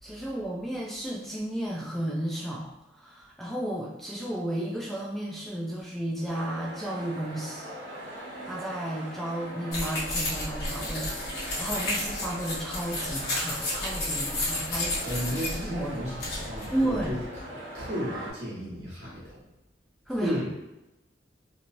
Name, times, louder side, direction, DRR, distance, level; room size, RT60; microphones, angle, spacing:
voice 1, 0.0-7.7 8.4-15.1 15.6-16.0 16.7-17.2 20.1-20.6, right 1 dB, ahead, -4 dB, 0.4 m, -33 dB
sound 1, 6.3-18.3, right 1 dB, 90° right, 0.9 m, -41 dB
sound 2, 9.7-17.2, left 1 dB, 60° left, 1.0 m, -32 dB
voice 2, 15.0-17.2 17.7-19.4 20.2-20.6, equal, 70° right, -6 dB, 1.3 m, -33 dB
2.9 x 2.9 x 2.5 m, 0.95 s
head